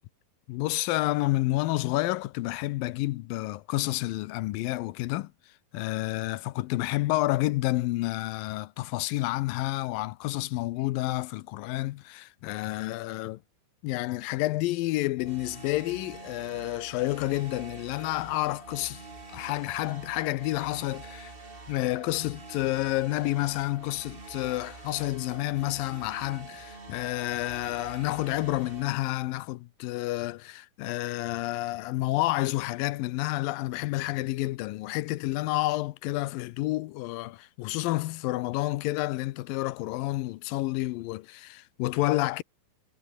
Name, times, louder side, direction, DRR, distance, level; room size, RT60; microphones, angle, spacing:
voice 1, 0.5-5.3 5.7-13.4 13.8-19.0 19.3-21.3 21.7-42.4, left 18 dB, 85° left, 2.5 m, -29 dB
sound 1, 15.2-28.9, right 3 dB, 20° right, 1.9 m, -45 dB
omnidirectional pair, 4.0 m